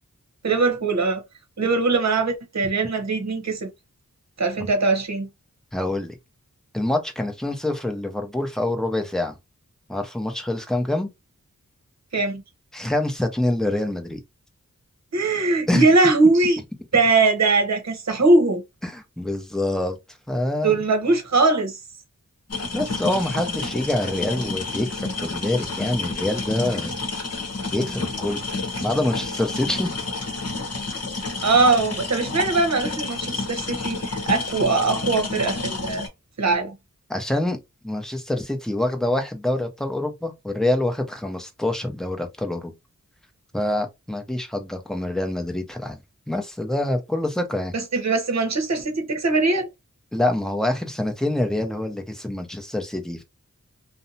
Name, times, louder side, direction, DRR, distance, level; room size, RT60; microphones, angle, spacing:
voice 1, 0.4-1.2 1.6-3.7 4.4-5.3 12.1-12.4 15.1-16.6 16.9-18.6 20.6-21.8 31.4-36.0 36.4-36.7 47.7-49.7, right 3 dB, 60° right, 0.8 m, -21 dB
voice 2, 5.7-6.1 6.7-9.4 9.9-11.1 12.7-14.2 15.7-15.9 18.8-20.0 20.3-20.8 22.7-27.0 27.7-29.9 37.1-37.6 37.8-42.7 43.5-46.0 46.3-47.7 50.1-53.2, left 1 dB, ahead, 0.7 m, -26 dB
sound 1, 22.5-36.1, left 3 dB, 55° left, 0.9 m, -30 dB
2.6 x 2.1 x 2.7 m
wide cardioid pair, 60°, 31 cm